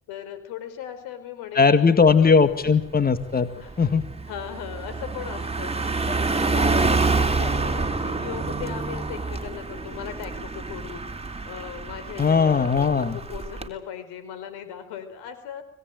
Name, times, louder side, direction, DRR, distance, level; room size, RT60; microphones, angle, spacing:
voice 1, 0.1-2.4 3.6-3.9 4.3-11.0 11.5-15.6, left 9 dB, 85° left, 11 dB, 4.7 m, -38 dB
voice 2, 1.5-3.5 3.8-4.0 12.2-13.2, left 5 dB, 25° left, 10 dB, 1.9 m, -18 dB
Car passing by, 2.1-2.3 2.7-13.7, right 3 dB, 15° right, 3.3 m, -27 dB
25.5 x 17.0 x 9.2 m, 0.74 s
supercardioid pair, 85°, 37 cm